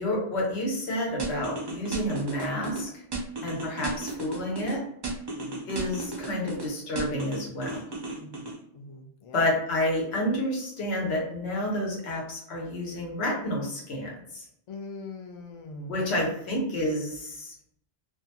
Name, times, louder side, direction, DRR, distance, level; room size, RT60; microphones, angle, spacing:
voice 1, 0.0-2.9 3.4-4.8 5.7-7.8 9.3-14.4 15.9-17.5, left 1 dB, 85° left, -2 dB, 1.2 m, -29 dB
sound 1, 1.2-2.8 3.1-4.7 5.0-6.7 7.0-8.5, right 3 dB, 35° right, 0.4 m, -34 dB
voice 2, 5.4-5.7 8.2-9.5 14.7-16.0, left 2 dB, 65° left, 3 dB, 0.3 m, -42 dB
2.5 x 2.3 x 2.8 m, 0.71 s
omnidirectional pair, 1.1 m